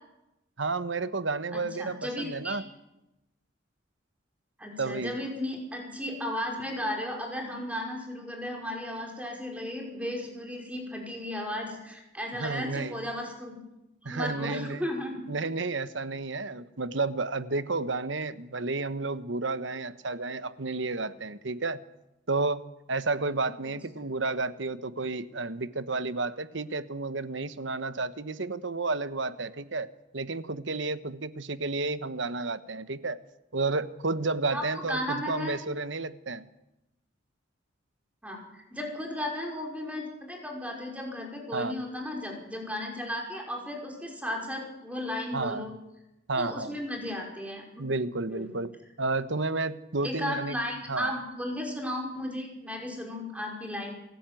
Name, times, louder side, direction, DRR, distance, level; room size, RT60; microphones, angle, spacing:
voice 1, 0.6-2.6 4.8-5.2 12.4-13.0 14.0-14.8 15.3-21.8 22.3-29.9 30.1-33.2 33.5-36.4 41.5-41.7 45.3-45.7 46.3-46.8 47.8-48.7 49.0-50.6 50.9-51.1, right 3 dB, 70° right, 13 dB, 1.2 m, -31 dB
voice 2, 1.5-2.6 4.6-13.6 14.1-15.2 23.6-23.7 34.5-35.6 38.2-45.7 46.4-47.8 48.3-48.6 50.0-53.9, left 1 dB, 5° right, 1 dB, 5.5 m, -35 dB
28.5 x 15.5 x 9.2 m, 0.95 s
head